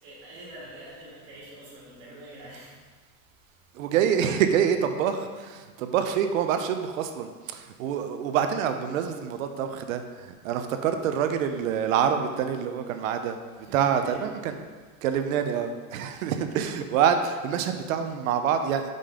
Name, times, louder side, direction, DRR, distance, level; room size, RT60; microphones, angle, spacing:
voice 1, 0.0-2.8 13.6-14.3, right 1 dB, 25° right, -7 dB, 2.0 m, -45 dB
voice 2, 3.7-13.4 13.7-14.5 15.0-18.9, right 8 dB, 65° right, 7 dB, 0.7 m, -26 dB
5.7 x 5.3 x 4.9 m, 1.4 s
supercardioid pair, 175°, 44 cm